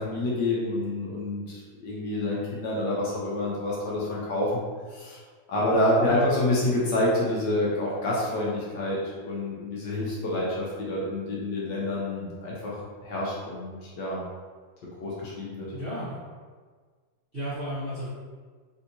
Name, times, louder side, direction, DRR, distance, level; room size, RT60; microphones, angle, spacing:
voice 1, 0.0-4.6 4.9-5.2 5.5-14.2 15.0-15.7, left 1 dB, 70° left, -5 dB, 1.2 m, -28 dB
voice 2, 6.1-6.4 15.7-16.1 17.3-18.1, equal, 45° right, -13 dB, 0.8 m, -33 dB
3.4 x 2.7 x 2.6 m, 1.5 s
omnidirectional pair, 2.2 m